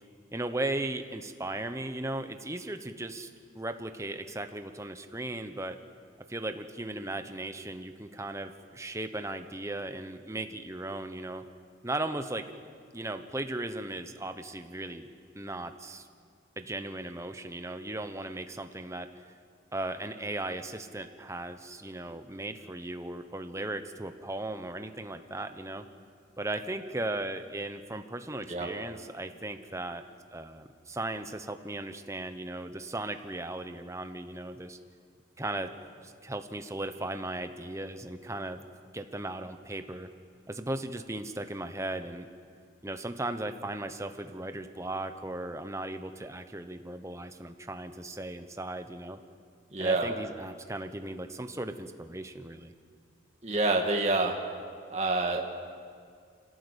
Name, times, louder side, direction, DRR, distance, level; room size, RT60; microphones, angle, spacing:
voice 1, 0.3-3.3 3.5-5.8 6.3-11.5 11.8-12.5 12.9-15.1 15.3-16.1 16.6-19.1 19.7-25.9 26.4-30.0 30.3-34.8 35.4-35.7 36.0-38.6 38.9-40.1 40.5-42.3 42.8-49.2 49.8-52.7, right 2 dB, 15° right, 8 dB, 1.1 m, -37 dB
voice 2, 49.7-50.2 53.4-54.4 54.9-55.5, right 2 dB, 35° right, 1 dB, 1.7 m, -27 dB
26.5 x 17.5 x 8.2 m, 2.2 s
head